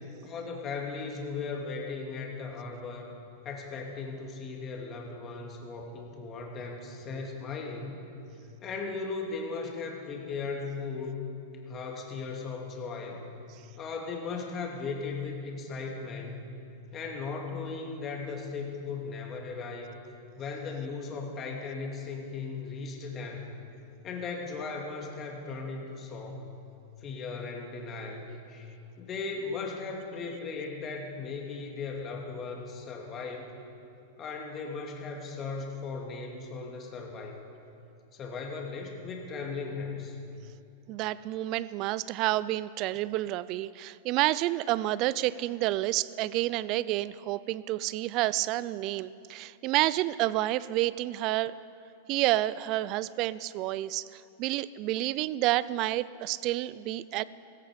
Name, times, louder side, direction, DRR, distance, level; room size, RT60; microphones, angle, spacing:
voice 1, 0.2-3.2 3.4-8.0 8.6-11.3 11.7-13.2 13.8-16.5 16.9-20.0 20.4-23.5 24.0-26.5 27.0-33.5 34.2-37.4 38.1-40.2, left 4 dB, 30° left, 1 dB, 2.5 m, -37 dB
voice 2, 40.9-51.5 52.1-57.2, right 16 dB, 45° right, 18 dB, 0.4 m, -29 dB
16.0 x 15.0 x 5.1 m, 2.7 s
hypercardioid pair, 115°, 0 cm